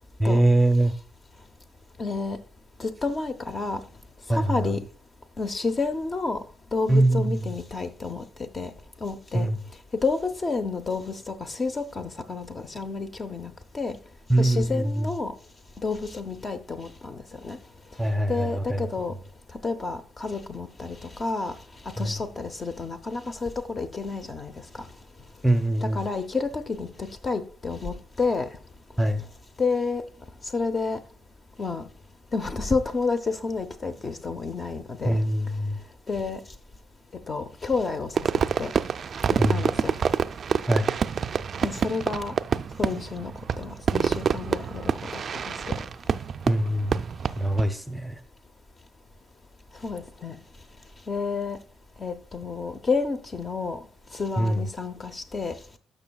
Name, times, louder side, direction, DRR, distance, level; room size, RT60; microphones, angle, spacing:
voice 1, 0.2-0.9 4.3-4.7 6.9-7.4 9.3-9.6 14.3-15.1 18.0-18.9 22.0-22.1 25.4-26.0 29.0-29.2 35.0-35.8 39.4-39.6 40.7-40.9 46.4-47.0 47.4-48.2 54.4-54.6, right 1 dB, ahead, 0.7 m, -23 dB
voice 2, 2.0-2.4 2.8-3.8 4.3-4.8 5.4-6.4 6.7-8.7 9.0-9.5 9.9-14.0 14.4-15.3 15.8-17.6 18.3-19.1 19.6-21.5 22.0-24.5 25.8-28.5 29.6-30.0 30.5-31.0 31.6-31.9 32.3-35.2 36.1-36.4 37.3-38.1 38.6-38.7 39.5-39.9 41.6-42.3 42.8-43.3 43.6-45.2 45.5-45.7 49.8-50.4 51.1-51.6 52.0-53.8 54.1-55.5, left 4 dB, 35° left, 0.7 m, -30 dB
Fireworks, 38.2-47.7, right 7 dB, 50° right, 0.3 m, -27 dB
13.0 x 5.4 x 2.3 m
cardioid pair, 90°, 0 cm